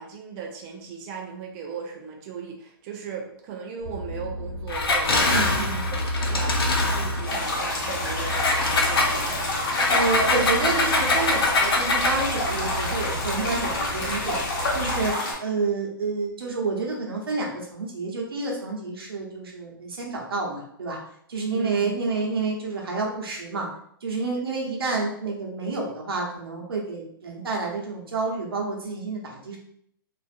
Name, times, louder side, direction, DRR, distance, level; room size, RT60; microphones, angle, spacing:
voice 1, 0.0-9.5 21.5-21.9, right 6 dB, 25° right, 1 dB, 0.3 m, -37 dB
sound 1, 3.8-15.1, equal, 45° right, 0.9 m, -33 dB
Engine, 4.7-7.4 8.3-12.3, left 2 dB, 80° left, 0.7 m, -24 dB
voice 2, 5.3-5.8 9.9-14.4 14.7-15.1 15.4-21.0 21.3-23.7 24.0-29.6, right 3 dB, 85° right, -1 dB, 0.9 m, -29 dB
sound 2, 7.2-15.3, left 1 dB, 60° left, 1.3 m, -28 dB
2.5 x 2.5 x 2.5 m, 0.69 s
hypercardioid pair, 150°, 12 cm